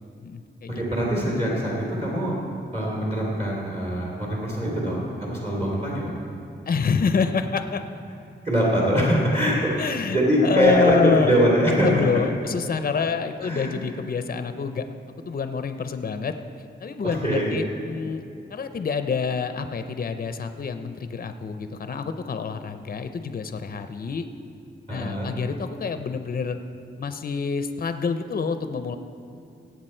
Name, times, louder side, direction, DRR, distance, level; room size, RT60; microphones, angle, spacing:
voice 1, 0.2-0.8 6.7-7.8 9.8-11.4 11.8-16.3 16.8-18.2 18.5-24.3 24.9-26.6 27.0-29.0, left 5 dB, 50° left, 9 dB, 0.6 m, -27 dB
voice 2, 0.8-2.4 2.7-6.2 8.4-9.7 10.1-12.1 13.4-13.7 17.0-17.6 24.9-25.3, equal, 30° right, -4 dB, 2.8 m, -23 dB
17.5 x 8.1 x 4.4 m, 2.6 s
wide cardioid pair, 110°, 19 cm